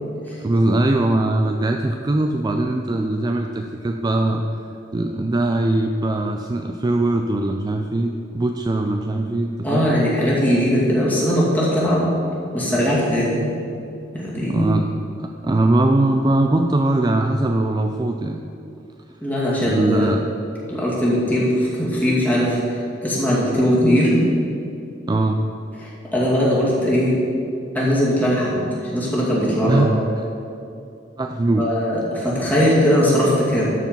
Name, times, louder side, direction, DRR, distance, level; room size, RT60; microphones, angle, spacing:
voice 1, 0.4-4.4 4.9-9.9 14.5-14.9 15.2-18.4 19.6-20.2 25.1-25.4 29.7-30.1 31.2-31.7, right 2 dB, 20° right, 4 dB, 0.3 m, -21 dB
voice 2, 9.6-12.1 12.5-13.6 14.1-14.7 19.2-20.1 20.7-24.3 25.8-27.2 27.7-29.9 31.6-33.7, equal, 10° left, -7 dB, 2.4 m, -20 dB
13.0 x 4.9 x 5.3 m, 2.6 s
head